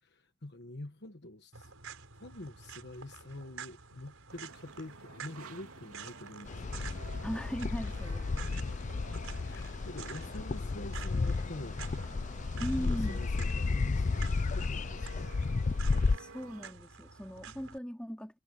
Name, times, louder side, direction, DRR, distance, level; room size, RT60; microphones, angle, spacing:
voice 1, 0.0-1.7 2.2-7.2 7.8-8.1 9.3-11.8 12.6-15.4, left 1 dB, 50° left, 1.3 m, -46 dB
sound 1, 1.5-17.8, right 6 dB, 70° right, 5.4 m, -50 dB
sound 2, 4.3-16.7, right 4 dB, 85° right, 2.8 m, -53 dB
sound 3, 6.5-16.2, left 4 dB, 35° left, 0.4 m, -33 dB
voice 2, 7.2-8.4 12.6-13.3 16.1-18.4, equal, 5° left, 3.4 m, -39 dB
head